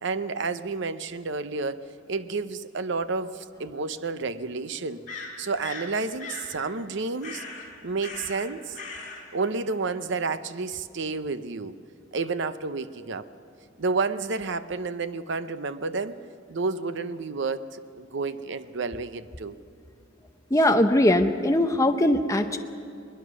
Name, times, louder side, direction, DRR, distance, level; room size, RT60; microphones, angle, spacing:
voice 1, 0.0-5.0 5.4-7.4 7.8-8.8 9.3-11.8 12.1-13.3 13.8-16.2 16.5-19.6, right 4 dB, 65° right, 12 dB, 0.8 m, -30 dB
sound 1, 3.0-3.1 5.1-5.9 6.2-6.5 7.2-7.7 8.0-8.5 8.7-9.2, left 4 dB, 40° left, 4.2 m, -38 dB
voice 2, 20.5-22.6, left 1 dB, 15° left, 5 dB, 0.7 m, -21 dB
22.0 x 21.0 x 6.3 m, 2.6 s
head